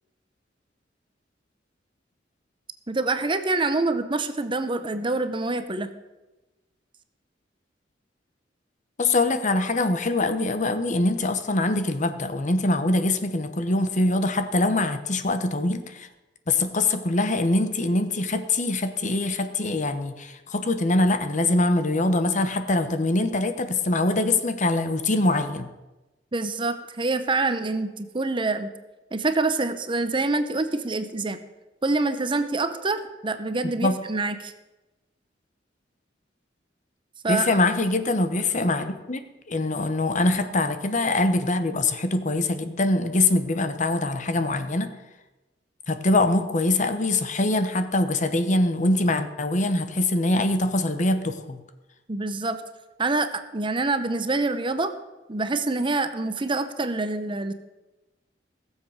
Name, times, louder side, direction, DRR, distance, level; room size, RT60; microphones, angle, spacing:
voice 1, 2.9-5.9 26.3-28.7 29.1-31.4 31.8-34.5 37.2-37.5 52.1-52.6 53.0-54.9 55.3-57.5, right 3 dB, 30° right, 10 dB, 0.8 m, -26 dB
voice 2, 9.0-16.1 16.5-25.7 33.8-34.0 37.3-44.9 45.9-51.6, left 2 dB, 45° left, 9 dB, 1.0 m, -23 dB
16.5 x 7.5 x 6.5 m, 1.1 s
head